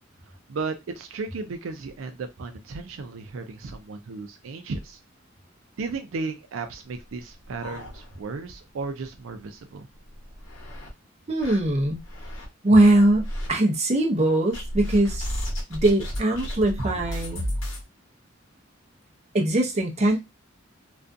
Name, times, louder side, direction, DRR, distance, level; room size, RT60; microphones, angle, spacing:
voice 1, 0.5-5.0 5.8-9.9, right 4 dB, 90° right, 7 dB, 0.4 m, -34 dB
sound 1, 7.0-8.5 8.8-8.9 9.3-9.4 10.0-10.9 11.4-12.5 12.8-13.5 14.5-17.8, equal, 85° left, 1.0 m, -33 dB
voice 2, 11.3-12.0 12.6-15.3 15.7-17.5 19.3-20.2, right 1 dB, 35° right, 0 dB, 0.6 m, -21 dB
2.5 x 2.3 x 2.5 m, 0.21 s
head